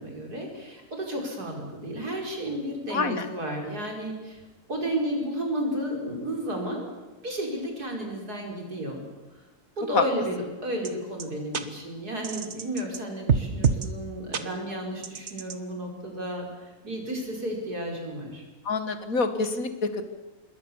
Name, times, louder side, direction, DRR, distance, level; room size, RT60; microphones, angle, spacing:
voice 1, 0.0-4.4 4.7-6.9 7.2-9.0 9.8-18.4, right 1 dB, 85° right, 1 dB, 5.7 m, -32 dB
voice 2, 2.9-3.3 9.9-10.0 18.7-20.0, left 4 dB, 65° left, 9 dB, 2.2 m, -26 dB
sound 1, 10.8-10.9 11.2-11.3 11.5-11.6 12.2-13.0 13.3-13.9 14.3-14.4 15.0-15.5, right 6 dB, 50° right, 1.5 m, -25 dB
26.5 x 21.5 x 7.2 m, 1.1 s
omnidirectional pair, 1.6 m